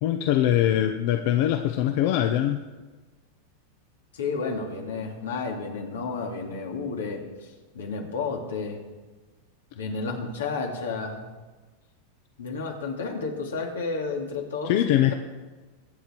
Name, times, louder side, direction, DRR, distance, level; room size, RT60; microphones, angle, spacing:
voice 1, 0.0-2.6 14.6-15.1, left 12 dB, 60° left, 6 dB, 0.8 m, -22 dB
voice 2, 4.1-8.8 9.7-11.2 12.4-14.8, left 4 dB, 90° left, 2 dB, 2.6 m, -31 dB
22.0 x 8.2 x 4.5 m, 1.3 s
hypercardioid pair, 115°, 0 cm